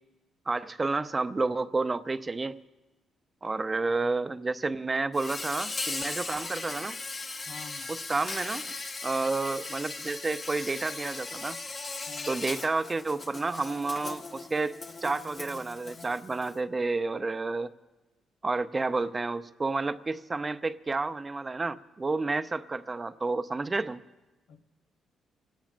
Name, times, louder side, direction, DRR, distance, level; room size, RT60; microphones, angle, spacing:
voice 1, 0.5-2.6 3.4-7.0 7.9-8.6 9.0-11.6 12.3-17.7 18.4-24.0, right 3 dB, 25° right, 11 dB, 0.6 m, -30 dB
voice 2, 3.8-4.2 7.4-8.0 12.1-12.6 24.5-24.6, left 5 dB, 85° left, 5 dB, 1.1 m, -49 dB
Insect, 5.1-16.5, left 3 dB, 40° left, 1.4 m, -38 dB
25.5 x 17.5 x 2.5 m, 1.1 s
cardioid pair, 90°, 0 cm